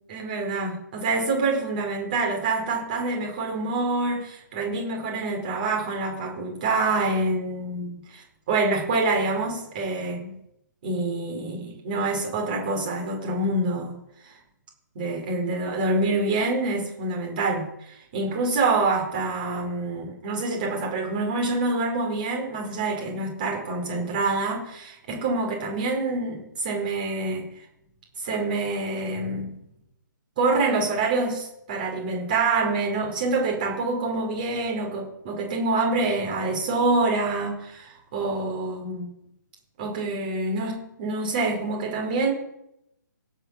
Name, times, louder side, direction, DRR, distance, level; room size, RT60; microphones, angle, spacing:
voice 1, 0.1-10.4 10.8-14.0 14.2-14.3 14.9-27.5 28.2-29.7 30.4-39.1 39.8-42.3, right 3 dB, 30° right, -1 dB, 4.3 m, -26 dB
16.5 x 5.9 x 7.3 m, 0.81 s
hypercardioid pair, 170°, 10 cm